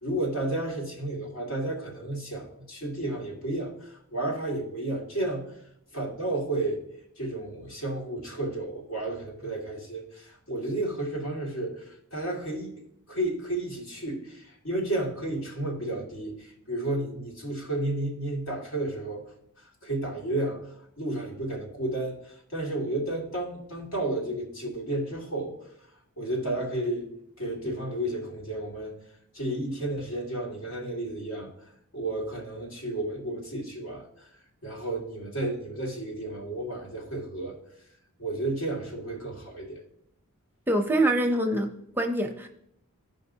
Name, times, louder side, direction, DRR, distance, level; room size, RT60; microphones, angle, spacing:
voice 1, 0.0-5.4 5.9-6.8 7.2-12.7 13.1-19.2 19.8-20.7 21.0-25.5 26.2-27.1 27.4-29.0 29.3-31.5 31.9-34.3 34.6-37.6 38.2-39.8, right 1 dB, 70° left, -1 dB, 2.2 m, -32 dB
voice 2, 40.7-42.5, right 1 dB, 10° right, 3 dB, 0.6 m, -25 dB
14.5 x 5.2 x 2.7 m, 0.73 s
head